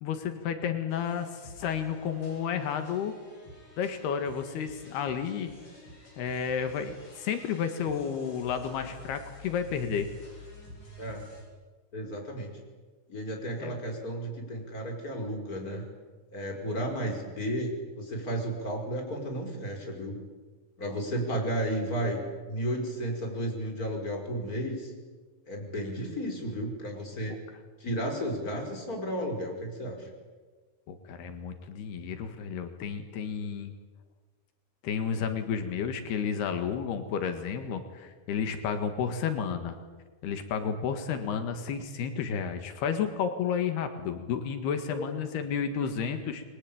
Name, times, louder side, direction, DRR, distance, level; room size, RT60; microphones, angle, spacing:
voice 1, 0.0-3.1 3.8-5.5 6.2-10.1 13.6-13.8 27.3-27.4 30.9-33.7 34.8-39.8 40.2-46.4, left 7 dB, 85° left, 7 dB, 3.8 m, -31 dB
sound 1, 0.9-11.4, left 3 dB, 55° left, 9.4 m, -50 dB
voice 2, 11.0-11.3 11.9-12.6 13.1-15.8 16.3-20.2 20.8-22.2 22.5-24.9 25.5-27.4 27.8-30.1 44.9-45.1 45.3-45.4, right 1 dB, 20° left, 2 dB, 5.7 m, -33 dB
29.5 x 22.5 x 8.8 m, 1.4 s
omnidirectional pair, 4.5 m